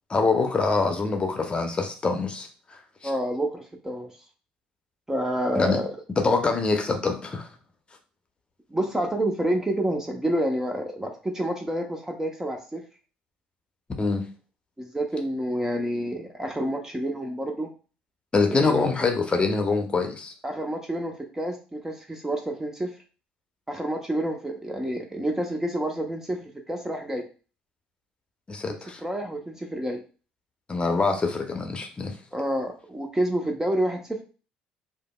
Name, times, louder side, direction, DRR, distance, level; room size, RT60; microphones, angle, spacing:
voice 1, 0.1-2.5 5.6-5.8 6.2-7.5 14.0-14.3 18.3-20.3 28.5-29.0 30.7-32.1, left 4 dB, 25° left, 4 dB, 0.8 m, -24 dB
voice 2, 3.0-4.1 5.1-5.9 8.7-12.8 14.8-17.7 18.5-18.9 20.4-22.9 23.7-27.3 28.7-30.0 32.3-34.2, right 1 dB, 10° right, 3 dB, 0.7 m, -28 dB
5.0 x 2.1 x 2.2 m, 0.36 s
hypercardioid pair, 55°, 4 cm